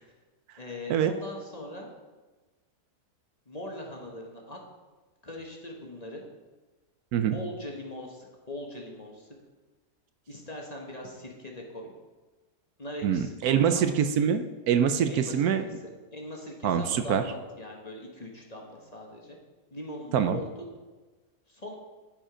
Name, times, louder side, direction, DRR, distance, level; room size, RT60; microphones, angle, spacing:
voice 1, 0.6-1.9 3.5-4.6 5.2-6.2 7.3-9.3 10.3-11.9 12.8-13.9 15.1-15.7 16.1-19.4 19.7-20.5 21.5-21.7, left 1 dB, 25° left, 0 dB, 1.3 m, -40 dB
voice 2, 13.0-15.6 16.6-17.2 20.1-20.4, right 8 dB, 75° right, 9 dB, 1.1 m, -24 dB
13.0 x 5.0 x 4.9 m, 1.2 s
omnidirectional pair, 1.7 m